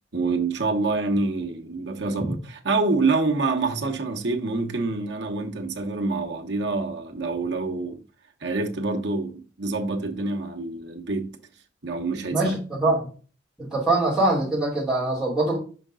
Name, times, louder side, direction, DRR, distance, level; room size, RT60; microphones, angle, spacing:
voice 1, 0.1-8.0 8.4-11.4 11.8-12.5, right 3 dB, 65° right, 1.2 m, -26 dB
voice 2, 12.3-13.1 13.6-15.6, right 2 dB, 5° right, 2.8 m, -23 dB
5.2 x 5.2 x 3.7 m
head